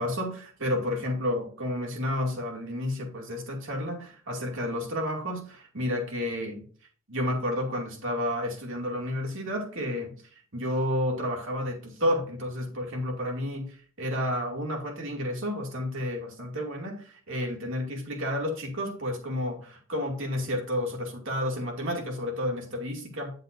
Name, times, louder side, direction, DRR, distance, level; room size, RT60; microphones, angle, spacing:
voice 1, 0.0-6.6 7.1-10.1 10.5-23.3, left 1 dB, 60° right, 2.6 m, -31 dB
10.0 x 7.9 x 2.7 m
head